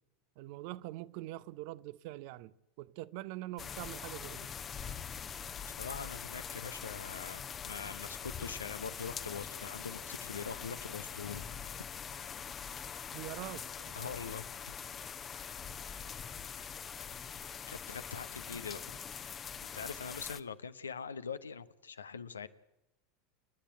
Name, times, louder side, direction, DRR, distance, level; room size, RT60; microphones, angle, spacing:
voice 1, 0.4-4.5 13.1-14.1, right 17 dB, 55° right, 0.7 m, -44 dB
sound 1, 3.6-20.4, left 7 dB, 30° left, 1.0 m, -43 dB
voice 2, 5.8-11.4 13.9-14.4 17.7-18.8 19.7-22.5, left 6 dB, 80° left, 0.9 m, -43 dB
29.0 x 10.0 x 9.1 m
figure-of-eight pair, 80°, 0 cm